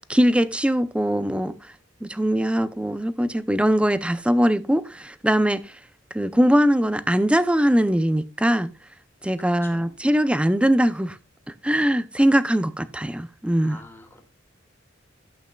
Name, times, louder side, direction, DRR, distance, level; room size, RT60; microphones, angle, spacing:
voice 1, 0.1-1.7 2.0-5.8 6.1-8.7 9.2-11.2 11.6-13.8, equal, 5° right, 0.5 m, -21 dB
voice 2, 9.4-9.9 13.6-14.2, left 1 dB, 10° left, 2.0 m, -46 dB
12.0 x 8.1 x 2.3 m
head